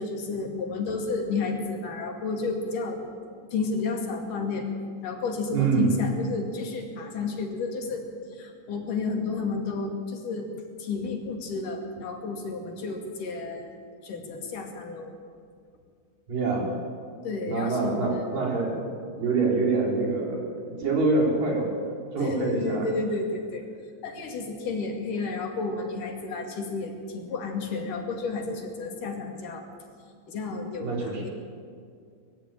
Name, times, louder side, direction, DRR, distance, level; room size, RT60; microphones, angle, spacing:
voice 1, 0.0-3.0 3.5-4.7 5.0-10.5 10.8-13.7 14.0-15.1 17.2-18.3 22.2-23.7 24.0-29.7 30.3-31.3, left 4 dB, 75° left, 2 dB, 4.0 m, -31 dB
voice 2, 5.5-5.9 16.3-16.7 17.5-18.8 19.2-21.7 22.1-22.9 30.8-31.2, right 3 dB, 85° right, -1 dB, 5.7 m, -25 dB
21.5 x 14.5 x 9.1 m, 2.2 s
omnidirectional pair, 3.8 m